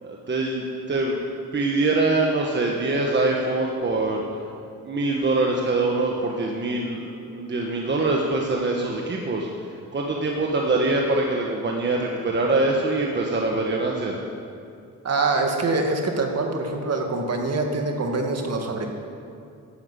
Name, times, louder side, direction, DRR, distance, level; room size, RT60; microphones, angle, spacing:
voice 1, 0.0-1.2 1.5-4.2 4.8-9.5 9.9-14.2, right 2 dB, 35° right, 0 dB, 1.4 m, -24 dB
voice 2, 15.0-18.9, right 3 dB, 50° right, 2 dB, 2.1 m, -24 dB
14.5 x 9.5 x 8.2 m, 2.4 s
cardioid pair, 115°, 33 cm